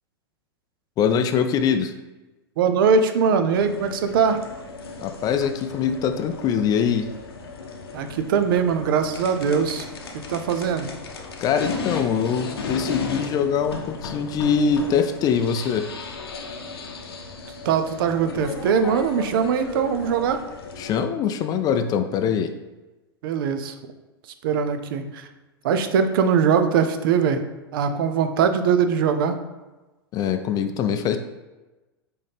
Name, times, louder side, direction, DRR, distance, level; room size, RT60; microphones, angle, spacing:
voice 1, 1.0-1.9 5.0-7.1 11.4-15.9 20.8-22.5 30.1-31.2, left 7 dB, 30° left, 8 dB, 0.3 m, -23 dB
voice 2, 2.6-4.4 7.9-9.8 10.3-10.9 17.6-20.4 23.2-23.7 24.4-25.3 25.6-27.4 27.7-29.4, right 6 dB, 60° right, 8 dB, 0.5 m, -21 dB
sound 1, 3.5-21.0, left 4 dB, 70° left, 0.7 m, -35 dB
4.2 x 3.8 x 3.3 m, 1.1 s
figure-of-eight pair, 95°, 13 cm